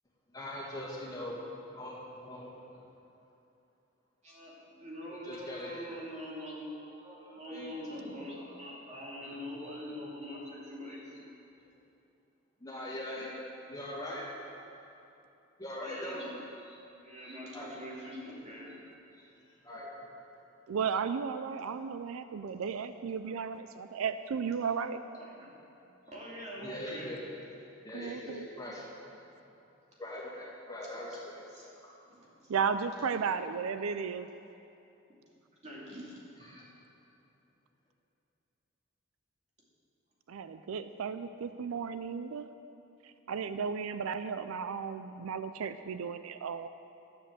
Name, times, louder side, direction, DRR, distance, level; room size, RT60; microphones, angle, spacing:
voice 1, 0.3-1.4 1.7-2.8 5.2-5.9 7.3-8.0 9.6-9.7 12.6-13.4 13.7-14.3 15.6-16.2 16.7-16.8 17.5-17.8 19.1-19.2 19.6-19.9 26.6-27.2 27.5-28.9 30.0-31.4 36.4-36.7, left 1 dB, 15° left, -5 dB, 2.1 m, -42 dB
voice 2, 4.2-11.3 13.2-13.3 15.8-16.4 17.0-18.9 25.1-25.5 26.1-27.1 30.8-30.9 31.5-31.7 32.1-32.5 35.6-36.1 36.4-36.6, equal, 35° right, -5 dB, 2.6 m, -44 dB
voice 3, 20.7-25.0 27.9-28.5 32.5-34.3 40.3-42.5 43.0-46.7, right 6 dB, 85° right, 11 dB, 0.4 m, -34 dB
11.0 x 7.7 x 7.4 m, 2.8 s
head